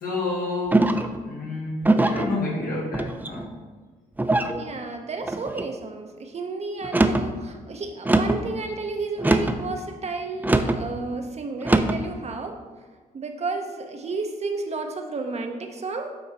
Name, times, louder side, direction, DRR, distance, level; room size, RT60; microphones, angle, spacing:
voice 1, 0.0-0.9 1.2-3.5, left 2 dB, 70° left, -3 dB, 1.8 m, -29 dB
sound 1, 0.7-1.2 1.8-2.3 2.9-3.5 4.2-4.6 5.2-5.7 6.8-7.3 8.0-8.4 9.2-9.6 10.4-10.8 11.6-12.0, right 2 dB, 10° right, 0.5 m, -21 dB
voice 2, 4.6-12.6 13.1-16.1, right 3 dB, 45° right, 4 dB, 0.8 m, -32 dB
8.6 x 3.0 x 4.1 m, 1.4 s
supercardioid pair, 60°, 16 cm